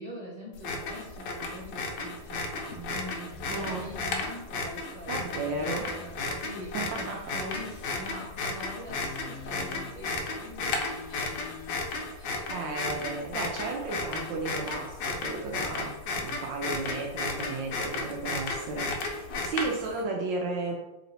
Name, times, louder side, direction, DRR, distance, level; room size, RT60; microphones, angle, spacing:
voice 1, 0.0-11.4 12.2-13.4, equal, 30° left, -8 dB, 0.8 m, -44 dB
sound 1, 0.5-20.0, left 3 dB, 70° left, 1.1 m, -34 dB
sound 2, 3.3-4.3 5.0-6.2 7.0-8.2 8.9-10.0 10.7-11.9, left 6 dB, 85° left, 1.5 m, -47 dB
voice 2, 3.5-3.9 5.1-5.9 6.7-7.2 12.5-20.8, right 3 dB, 75° right, 0 dB, 1.1 m, -34 dB
3.3 x 3.0 x 4.0 m, 0.97 s
omnidirectional pair, 2.3 m